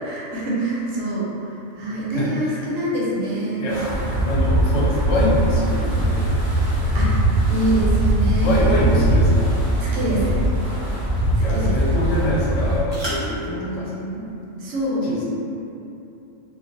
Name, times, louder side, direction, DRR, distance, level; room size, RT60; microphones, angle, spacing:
voice 1, 0.0-1.3 1.8-4.1 6.9-7.2 7.5-8.8 9.8-10.4 11.4-12.2 13.5-14.2 14.6-15.1, right 1 dB, 80° right, -6 dB, 1.0 m, -25 dB
voice 2, 2.1-2.6 3.6-3.8 4.2-6.3 8.4-9.5 11.4-14.0 15.1-15.2, left 1 dB, 70° left, -6 dB, 0.9 m, -25 dB
Wind, 3.7-12.8, right 1 dB, 15° left, 0.5 m, -20 dB
sound 1, 6.0-13.5, right 1 dB, 25° right, 0.6 m, -41 dB
2.4 x 2.0 x 2.6 m, 2.8 s
omnidirectional pair, 1.3 m